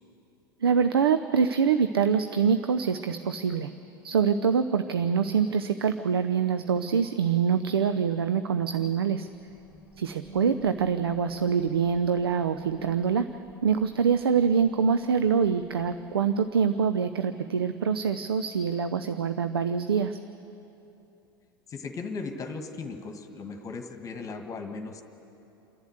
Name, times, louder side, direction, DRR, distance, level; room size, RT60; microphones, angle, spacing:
voice 1, 0.6-3.7 4.0-9.3 10.0-13.3 13.6-20.2, right 6 dB, 75° right, 10 dB, 0.7 m, -25 dB
sound 1, 9.3-17.1, right 1 dB, 5° left, 3.4 m, -48 dB
voice 2, 21.7-25.0, left 4 dB, 25° left, 5 dB, 1.6 m, -37 dB
29.0 x 11.5 x 7.9 m, 2.9 s
figure-of-eight pair, 85°, 13 cm